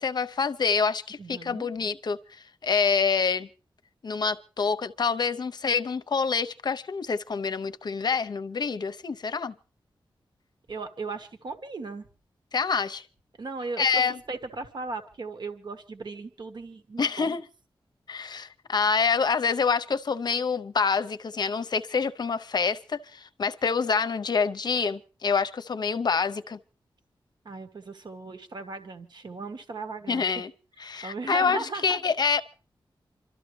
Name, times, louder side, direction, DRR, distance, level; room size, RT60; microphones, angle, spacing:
voice 1, 0.0-2.2 2.6-3.5 4.0-9.5 12.5-13.0 13.8-14.2 17.0-17.4 18.1-26.6 30.1-30.5 30.8-32.4, left 5 dB, 55° left, 0.7 m, -26 dB
voice 2, 1.2-1.7 10.7-12.1 13.4-14.0 14.3-17.3 27.4-30.4 31.0-32.0, right 3 dB, 55° right, 1.4 m, -37 dB
27.0 x 13.0 x 3.2 m
wide cardioid pair, 155°, 9 cm